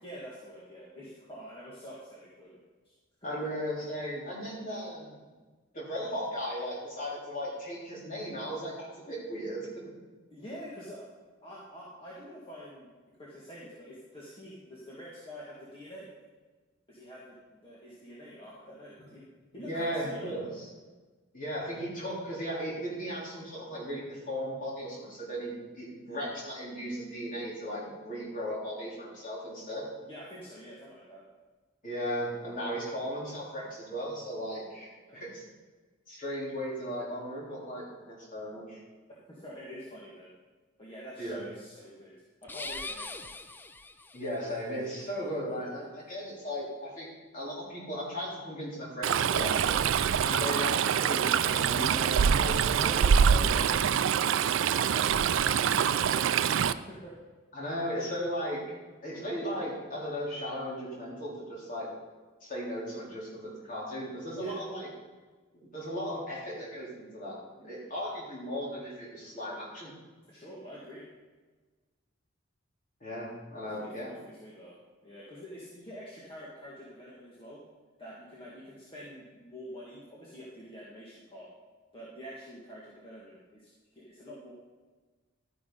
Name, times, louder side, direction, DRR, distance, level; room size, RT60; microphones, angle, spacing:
voice 1, 0.0-2.6 3.2-3.3 10.3-11.1 11.4-12.9 13.2-16.1 16.9-19.3 19.5-20.6 30.0-31.2 35.1-35.3 39.3-40.3 40.8-42.1 42.4-43.3 50.1-50.3 52.7-54.0 54.4-57.2 64.4-64.6 67.6-67.9 70.3-71.1 73.7-77.6 78.0-81.5 81.9-84.5, equal, 25° left, -7 dB, 2.0 m, -46 dB
voice 2, 3.2-5.1 5.7-9.7 19.7-20.7 21.3-29.9 31.8-35.4 36.1-38.8 41.2-41.4 44.1-49.8 50.2-53.1 57.5-58.8 59.0-61.9 62.4-64.9 65.5-69.9 73.0-74.1, equal, 40° left, -5 dB, 3.7 m, -36 dB
sound 1, 42.4-44.4, left 3 dB, 10° left, 0.3 m, -41 dB
Stream, 49.0-56.7, right 7 dB, 70° right, 0.4 m, -25 dB
12.5 x 9.8 x 3.9 m, 1.3 s
head